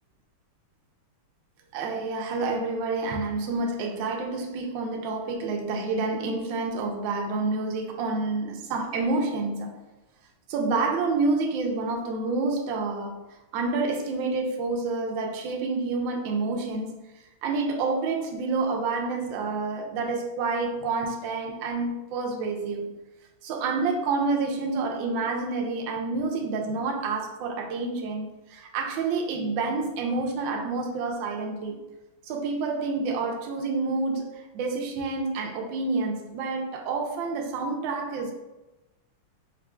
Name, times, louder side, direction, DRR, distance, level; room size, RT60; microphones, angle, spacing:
voice 1, 1.7-9.7 10.5-13.2 13.5-17.0 17.4-22.9 23.4-31.8 32.2-38.3, right 3 dB, 70° right, 1.3 m, -28 dB
4.9 x 3.3 x 2.3 m
omnidirectional pair, 2.4 m